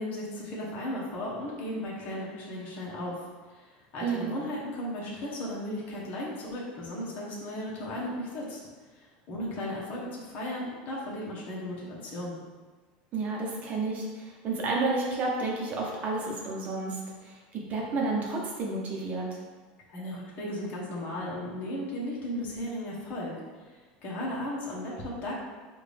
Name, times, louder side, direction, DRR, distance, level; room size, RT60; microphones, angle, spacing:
voice 1, 0.0-8.6 8.9-12.4 19.9-23.3 23.6-25.3, left 1 dB, 45° left, -5 dB, 1.1 m, -36 dB
voice 2, 4.0-4.3 13.1-19.4, right 3 dB, 40° right, -2 dB, 0.9 m, -31 dB
4.8 x 2.6 x 3.4 m, 1.4 s
supercardioid pair, 130°, 4 cm